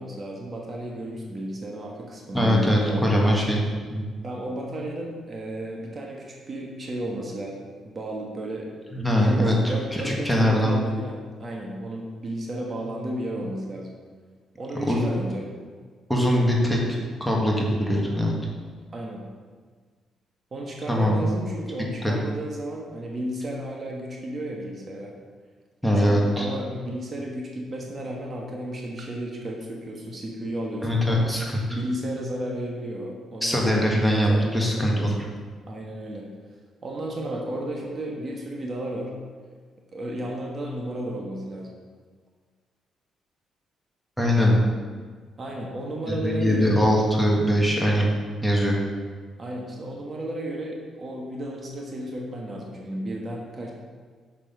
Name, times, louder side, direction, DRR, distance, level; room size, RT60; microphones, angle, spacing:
voice 1, 0.0-3.1 4.2-8.7 9.0-13.9 14.6-15.5 18.9-19.3 20.5-25.1 26.0-31.3 31.7-35.1 35.7-36.3 36.8-39.1 39.9-41.7 45.4-46.8 49.4-53.7, right 1 dB, 40° right, -1 dB, 1.3 m, -33 dB
voice 2, 2.3-4.0 8.9-9.7 10.0-10.8 14.9-15.0 16.1-16.8 17.2-18.3 20.9-21.2 22.0-22.1 25.8-26.5 30.8-31.8 33.4-35.1 44.2-44.6 46.1-48.1 48.4-48.8, equal, ahead, -2 dB, 1.6 m, -22 dB
6.5 x 5.8 x 5.4 m, 1.5 s
cardioid pair, 90°, 0 cm